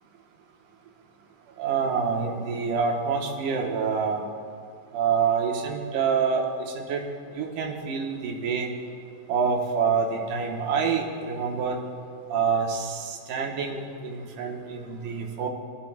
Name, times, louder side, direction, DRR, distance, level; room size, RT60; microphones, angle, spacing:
voice 1, 1.6-4.2 4.9-7.0 7.3-8.7 9.3-11.8 12.3-15.5, right 6 dB, 70° right, 1 dB, 2.6 m, -27 dB
24.0 x 11.0 x 2.3 m, 2.2 s
omnidirectional pair, 4.0 m